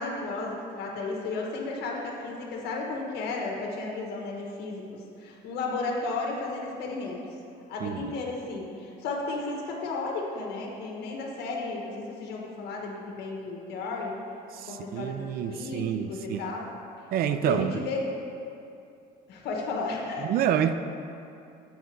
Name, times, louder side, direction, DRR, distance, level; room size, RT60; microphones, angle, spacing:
voice 1, 0.0-7.2 7.7-14.2 14.7-16.7 17.4-18.1 19.3-20.3, left 3 dB, 75° left, -1 dB, 1.3 m, -33 dB
voice 2, 14.5-16.4 17.1-17.8 20.3-20.7, right 9 dB, 60° right, 10 dB, 0.4 m, -28 dB
7.8 x 5.0 x 4.7 m, 2.6 s
cardioid pair, 110°, 17 cm